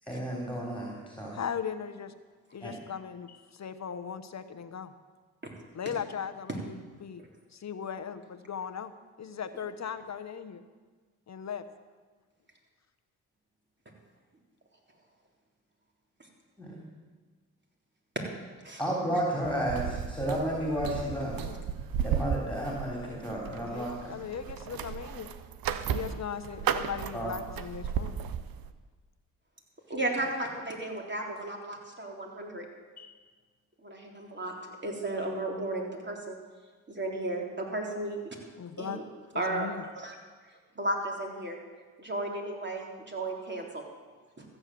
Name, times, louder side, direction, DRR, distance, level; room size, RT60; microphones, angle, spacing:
voice 1, 0.0-1.4 2.6-2.7 16.6-16.9 18.8-21.4 22.0-24.1 27.1-27.3, right 1 dB, 5° left, -2 dB, 3.6 m, -32 dB
voice 2, 1.3-2.1 2.5-4.9 5.7-7.2 7.5-8.9 9.2-10.6 11.3-11.6 21.4-21.6 23.6-25.3 25.9-28.2 33.0-33.2 38.6-39.0 39.3-39.8, left 7 dB, 45° left, 11 dB, 1.1 m, -38 dB
sound 1, 19.4-28.7, right 8 dB, 65° right, 0.9 m, -35 dB
voice 3, 29.9-32.7 33.8-34.5 34.8-36.4 36.9-38.4 38.8-39.1 39.4-39.7 40.0-40.1 40.8-41.6 42.0-43.8 44.4-44.5, right 2 dB, 30° right, 0 dB, 3.5 m, -34 dB
14.0 x 7.8 x 7.7 m, 1.4 s
supercardioid pair, 50°, 38 cm